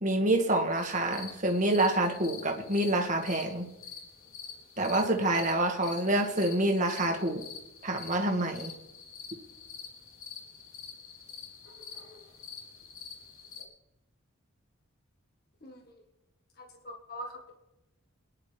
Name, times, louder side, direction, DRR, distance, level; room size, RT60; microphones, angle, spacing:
voice 1, 0.0-3.7 4.8-7.4 7.8-8.7, right 1 dB, 35° right, 2 dB, 2.0 m, -27 dB
sound 1, 0.8-13.6, left 6 dB, 70° left, 3.6 m, -47 dB
voice 2, 15.6-15.9 16.6-17.5, equal, 45° left, 1 dB, 1.6 m, -43 dB
23.5 x 10.5 x 3.5 m, 0.94 s
head